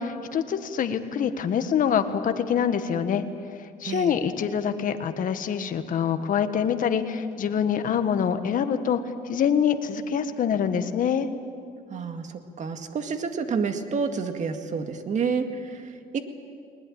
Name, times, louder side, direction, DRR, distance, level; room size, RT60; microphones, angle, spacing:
voice 1, 0.0-3.2 3.6-9.0 9.3-11.3, left 8 dB, 55° left, 9 dB, 1.6 m, -25 dB
voice 2, 3.8-4.2 11.9-16.2, right 5 dB, 45° right, 6 dB, 2.0 m, -29 dB
21.0 x 20.5 x 8.9 m, 2.3 s
cardioid pair, 110°, 17 cm